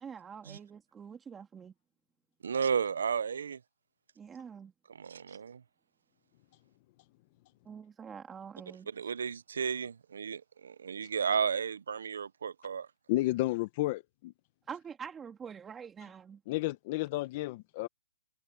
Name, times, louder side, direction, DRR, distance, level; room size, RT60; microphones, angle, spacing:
voice 1, 0.0-1.7 4.2-4.7 5.3-5.4 7.7-8.9 14.7-16.4, right 7 dB, 10° right, 2.0 m, -45 dB
voice 2, 2.4-3.6 5.0-5.6 9.0-12.9, right 6 dB, 75° right, 0.6 m, -33 dB
voice 3, 13.1-14.3 16.5-17.9, left 18 dB, 35° left, 0.9 m, -32 dB
hypercardioid pair, 155°, 0 cm